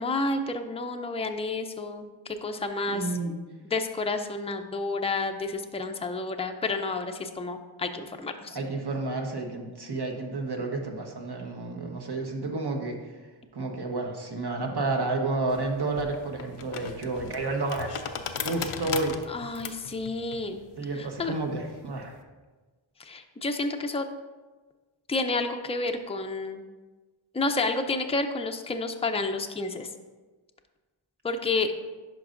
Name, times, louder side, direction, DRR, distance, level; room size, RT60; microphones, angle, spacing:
voice 1, 0.0-3.3 3.6-8.6 19.3-20.6 21.0-21.4 23.0-24.1 25.1-26.6 27.3-29.9 31.2-31.7, left 3 dB, 15° left, 5 dB, 0.5 m, -30 dB
voice 2, 2.9-3.4 8.5-13.0 13.5-17.9 18.4-19.2 20.8-22.2, right 2 dB, 50° right, 2 dB, 1.2 m, -30 dB
sound 1, 15.5-22.2, left 7 dB, 90° left, 0.6 m, -38 dB
10.5 x 5.3 x 2.5 m, 1.3 s
wide cardioid pair, 60°, 50 cm